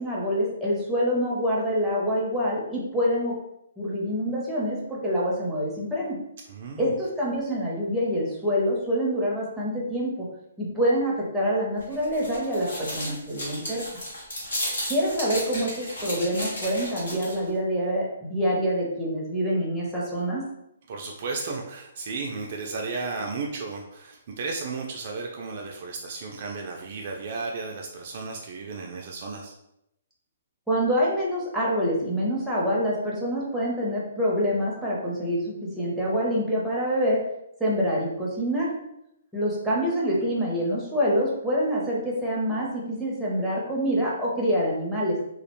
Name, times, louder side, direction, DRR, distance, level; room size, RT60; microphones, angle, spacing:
voice 1, 0.0-3.4 3.8-6.2 6.8-10.3 10.6-13.8 14.9-20.4 30.7-37.2 37.6-38.7 39.3-45.2, equal, ahead, -6 dB, 0.6 m, -26 dB
voice 2, 6.5-6.9 20.9-29.5, right 4 dB, 45° right, 0 dB, 0.3 m, -34 dB
sound 1, 11.8-17.5, equal, 90° left, 1.3 m, -34 dB
2.3 x 2.1 x 2.9 m, 0.82 s
hypercardioid pair, 160°, 0 cm